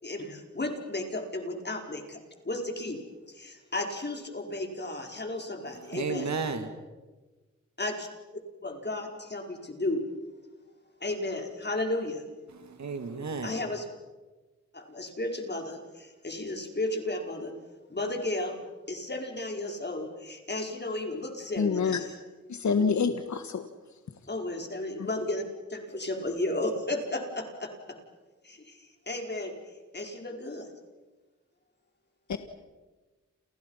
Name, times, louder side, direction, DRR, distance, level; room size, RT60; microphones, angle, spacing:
voice 1, 0.0-2.2 2.4-3.0 3.3-6.3 7.8-8.1 8.6-10.0 11.0-12.2 13.4-13.8 14.7-17.5 17.9-18.6 18.9-22.1 24.3-25.4 25.7-27.7 28.4-29.5 29.9-30.7, left 2 dB, 35° left, 4.9 m, -33 dB
voice 2, 5.7-6.7 12.5-13.5, right 4 dB, 65° right, 2.8 m, -33 dB
voice 3, 21.6-22.0 22.5-23.6 25.0-25.1 32.3-32.4, left 5 dB, 70° left, 1.7 m, -26 dB
29.5 x 29.5 x 5.7 m
cardioid pair, 60°, 30 cm